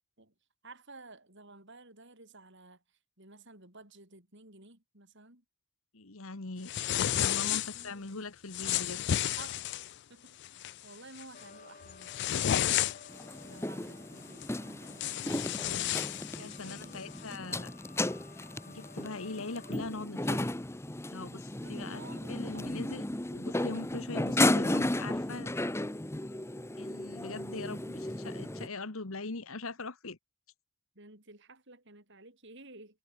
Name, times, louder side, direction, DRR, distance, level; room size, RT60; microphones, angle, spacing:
voice 1, 0.6-2.8 3.2-5.4 7.2-8.3 9.4-9.8 10.1-12.4 13.4-15.7 16.3-17.1 21.6-22.9 30.9-33.0, right 2 dB, 55° right, 6.2 m, -53 dB
voice 2, 5.9-9.0 16.4-17.7 18.7-20.6 21.1-22.0 22.3-25.5 26.8-30.2, left 3 dB, 65° left, 1.5 m, -41 dB
sound 1, 6.7-7.9 8.5-9.9 10.4-10.7 11.2-11.4 11.8-13.2 14.4-14.5 14.9-16.8, left 11 dB, 50° left, 0.4 m, -32 dB
sound 2, 11.3-19.7, left 4 dB, 35° left, 2.6 m, -55 dB
sound 3, 13.1-28.7, left 1 dB, 10° left, 0.8 m, -34 dB
head